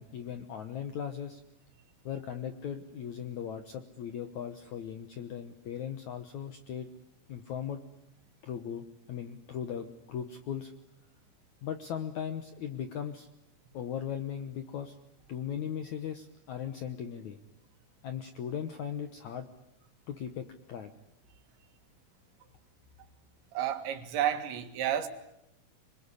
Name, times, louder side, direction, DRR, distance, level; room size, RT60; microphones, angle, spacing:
voice 1, 0.0-1.4 2.1-6.9 7.3-7.8 8.4-10.7 11.6-13.3 13.7-15.0 15.3-17.4 18.0-19.5 20.1-20.9, left 8 dB, 75° left, 1.7 m, -38 dB
voice 2, 23.5-25.1, right 10 dB, 90° right, 4.2 m, -31 dB
26.5 x 23.0 x 9.8 m
omnidirectional pair, 5.0 m